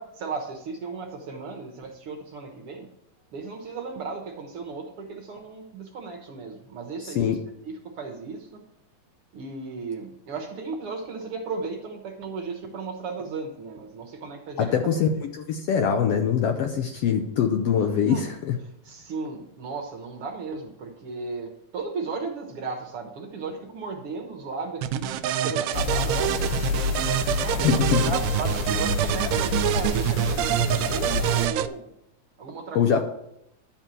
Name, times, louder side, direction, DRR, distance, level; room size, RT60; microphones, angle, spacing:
voice 1, 0.0-2.9 3.3-7.4 7.6-8.6 9.3-14.8 18.1-18.2 18.8-26.8 27.4-31.9 32.4-33.0, right 4 dB, 55° right, 2 dB, 1.9 m, -35 dB
voice 2, 7.0-7.4 14.6-18.6 27.6-28.1 32.7-33.0, left 7 dB, 75° left, 5 dB, 1.5 m, -23 dB
sound 1, 24.8-31.7, right 11 dB, 80° right, 1.7 m, -26 dB
sound 2, 25.7-31.5, left 4 dB, 90° left, 2.2 m, -28 dB
12.0 x 4.5 x 7.5 m, 0.80 s
omnidirectional pair, 3.3 m